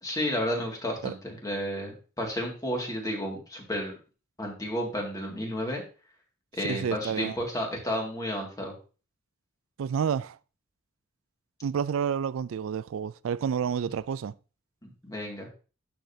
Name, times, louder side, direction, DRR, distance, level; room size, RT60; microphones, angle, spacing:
voice 1, 0.0-3.9 4.4-5.8 6.6-8.7 14.8-15.5, equal, 20° left, 2.2 m, -32 dB
voice 2, 6.6-7.4 9.8-10.4 11.6-14.3, right 7 dB, 90° right, 0.3 m, -29 dB
11.5 x 5.3 x 2.8 m
head